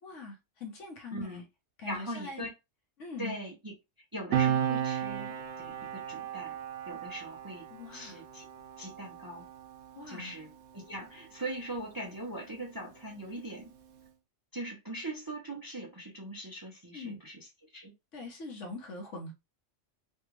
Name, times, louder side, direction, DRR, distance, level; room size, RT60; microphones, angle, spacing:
voice 1, 0.0-1.4 1.8-2.5 3.0-3.4 7.7-8.2 9.9-10.3 13.2-13.5 16.9-17.2 18.1-19.3, left 3 dB, 75° left, 1.3 m, -42 dB
voice 2, 1.1-1.4 1.8-2.5 3.2-3.7 4.1-6.6 6.9-7.6 7.9-8.5 8.8-9.4 10.1-13.7 14.5-17.4 17.7-17.9, right 1 dB, 25° right, 0.5 m, -41 dB
Piano, 4.3-11.3 11.6-11.8, right 10 dB, 85° right, 1.0 m, -35 dB
3.3 x 2.3 x 3.1 m
omnidirectional pair, 1.3 m